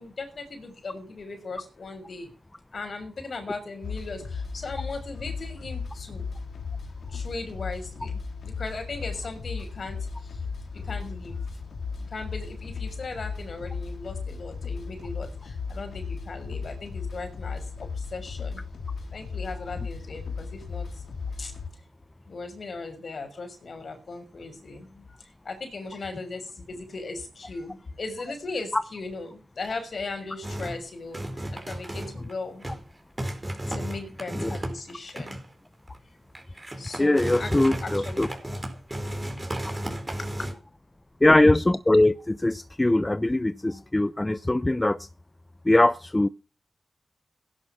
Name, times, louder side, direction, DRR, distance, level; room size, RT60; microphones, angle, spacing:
voice 1, 0.0-2.3 2.7-6.3 7.1-10.4 10.7-11.4 12.1-18.6 19.1-21.0 21.4-21.5 22.3-32.7 33.7-35.4 36.8-39.5 40.2-40.5, left 3 dB, 65° left, 6.1 m, -38 dB
sound 1, 3.8-21.7, left 5 dB, 80° left, 2.3 m, -36 dB
sound 2, 30.4-30.8 31.1-32.3 32.6-32.9 33.2-35.5 35.9-36.0 36.3-40.5, right 1 dB, 20° right, 4.9 m, -33 dB
voice 2, 37.0-38.3 41.2-45.1 45.7-46.3, left 1 dB, 20° left, 0.8 m, -21 dB
17.0 x 11.0 x 5.9 m
cardioid pair, 50°, 0 cm